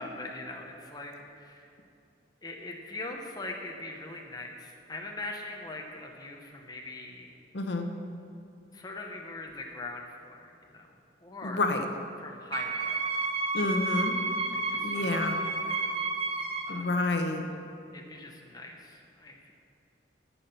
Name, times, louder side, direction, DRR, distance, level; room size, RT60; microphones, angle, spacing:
voice 1, 0.0-1.7 2.4-7.3 8.7-10.9 11.2-11.7 12.2-13.0 14.5-15.1 15.4-15.8 16.7-16.9 17.9-19.5, left 2 dB, 20° left, 1 dB, 0.9 m, -41 dB
voice 2, 7.5-7.9 11.4-11.9 13.5-14.2 14.7-15.4 16.7-17.5, left 2 dB, 60° left, 5 dB, 0.9 m, -29 dB
Wind instrument woodwind instrument, 12.5-16.8, right 3 dB, 30° right, 0.9 m, -31 dB
13.0 x 5.7 x 6.9 m, 2.6 s
head